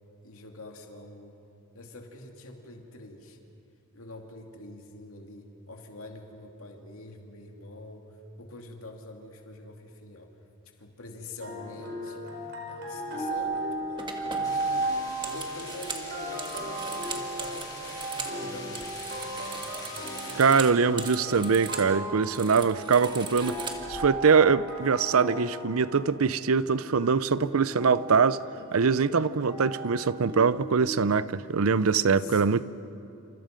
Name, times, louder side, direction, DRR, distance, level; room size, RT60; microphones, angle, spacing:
voice 1, 0.2-1.4 1.7-3.4 3.9-10.4 10.8-12.3 12.8-14.9 15.2-19.7 20.2-21.3 31.7-32.6, left 2 dB, 85° left, 2.5 m, -45 dB
sound 1, 11.4-30.7, right 1 dB, 50° right, 4.3 m, -36 dB
sound 2, 13.4-13.6 14.0-18.4 18.7-21.9 22.2-24.1, right 4 dB, 20° right, 1.6 m, -40 dB
sound 3, 14.4-20.5, left 3 dB, 20° left, 4.6 m, -45 dB
voice 2, 20.4-23.6 23.9-28.4 28.7-32.6, right 5 dB, 85° right, 0.6 m, -23 dB
28.0 x 28.0 x 5.2 m
head